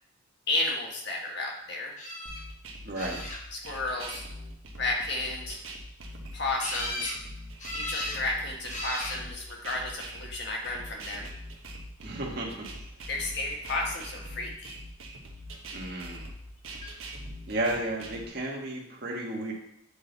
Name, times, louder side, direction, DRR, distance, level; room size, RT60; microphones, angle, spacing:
voice 1, 0.5-1.9 3.5-4.2 4.8-5.6 6.3-7.1 7.7-11.3 13.1-14.7, left 2 dB, 55° left, 0 dB, 1.4 m, -32 dB
sound 1, 2.0-2.4 2.9-3.7 6.6-7.2 7.6-8.2 8.7-9.2 10.1-10.6 16.8-16.9 17.3-17.4, left 1 dB, 35° left, 1.2 m, -36 dB
sound 2, 2.3-18.3, right 1 dB, 85° right, 1.1 m, -42 dB
voice 2, 2.8-3.2 12.0-12.6 15.7-16.2 17.5-19.5, right 1 dB, 50° right, -2 dB, 1.5 m, -33 dB
8.8 x 4.0 x 4.0 m, 0.75 s
head